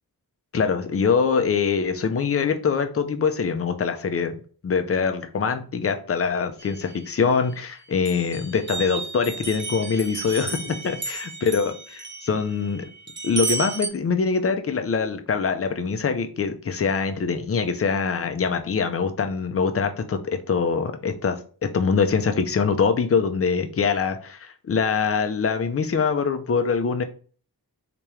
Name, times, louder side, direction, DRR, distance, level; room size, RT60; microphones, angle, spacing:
voice 1, 0.5-4.4 4.6-12.9 13.2-27.0, left 5 dB, 35° left, 7 dB, 0.5 m, -24 dB
sound 1, 6.6-7.6 8.1-13.9, right 4 dB, 30° right, 0.6 m, -33 dB
3.4 x 2.9 x 3.0 m, 0.40 s
wide cardioid pair, 110°, 39 cm